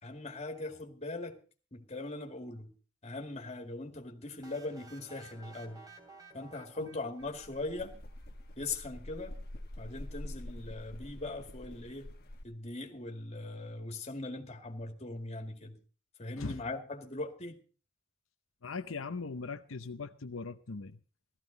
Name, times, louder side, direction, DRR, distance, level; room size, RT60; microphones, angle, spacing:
voice 1, 0.0-1.4 1.7-2.7 3.0-5.8 6.3-7.9 8.6-9.3 9.8-12.1 12.4-15.8 16.2-17.6, left 2 dB, 35° left, 2.2 m, -40 dB
sound 1, 4.4-8.2, right 4 dB, 20° right, 2.8 m, -55 dB
sound 2, 7.2-12.4, left 1 dB, 50° left, 1.4 m, -46 dB
voice 2, 18.6-21.0, left 4 dB, 85° left, 0.8 m, -40 dB
16.0 x 14.0 x 4.0 m
head